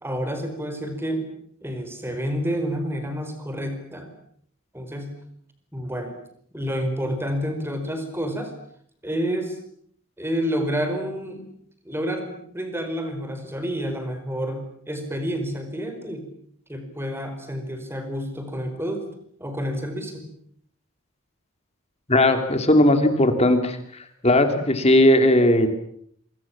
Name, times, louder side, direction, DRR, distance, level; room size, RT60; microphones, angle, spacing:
voice 1, 0.0-1.3 1.6-4.1 4.7-5.2 5.7-6.2 6.5-8.5 9.0-9.6 10.2-11.4 11.8-16.3 16.7-19.1 19.4-20.2, equal, 10° right, 7 dB, 4.9 m, -29 dB
voice 2, 22.1-23.8 24.2-25.7, left 1 dB, 30° left, 7 dB, 3.0 m, -17 dB
27.0 x 25.0 x 7.4 m, 0.66 s
head